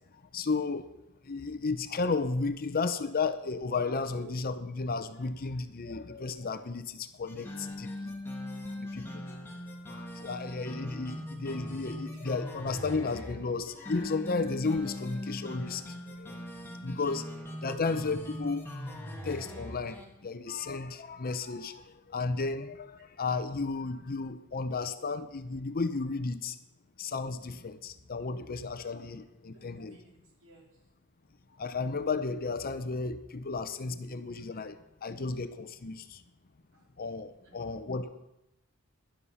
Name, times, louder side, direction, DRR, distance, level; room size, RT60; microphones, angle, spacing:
voice 1, 0.3-0.9 1.3-8.1 8.8-9.2 9.9-16.4 16.8-17.2 17.6-18.6 19.2-20.0 20.2-21.8 22.1-26.6 27.0-30.0 31.6-34.8 35.0-36.2 37.0-38.1, left 4 dB, 40° left, 11 dB, 0.7 m, -33 dB
sound 1, 7.3-20.1, left 1 dB, 10° left, 1.9 m, -41 dB
voice 2, 17.2-17.8 29.7-30.7 36.7-36.9 37.4-37.6 37.8-38.1, right 1 dB, 60° right, -1 dB, 3.6 m, -53 dB
11.5 x 10.5 x 5.6 m, 0.86 s
head